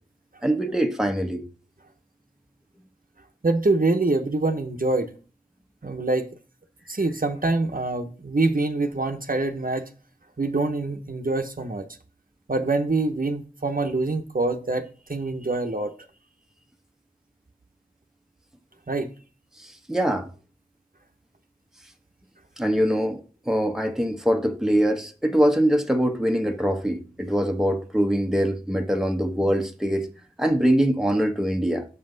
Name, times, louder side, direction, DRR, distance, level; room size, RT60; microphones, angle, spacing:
voice 1, 0.4-1.4 19.6-20.3 22.6-23.2 23.5-30.1 30.4-31.9, equal, 5° right, 1.0 m, -23 dB
voice 2, 3.4-5.1 5.8-6.3 6.9-9.8 10.4-11.9 12.5-15.9 18.9-19.1, right 2 dB, 60° right, 0.9 m, -25 dB
6.7 x 5.5 x 3.9 m
wide cardioid pair, 45°, 16 cm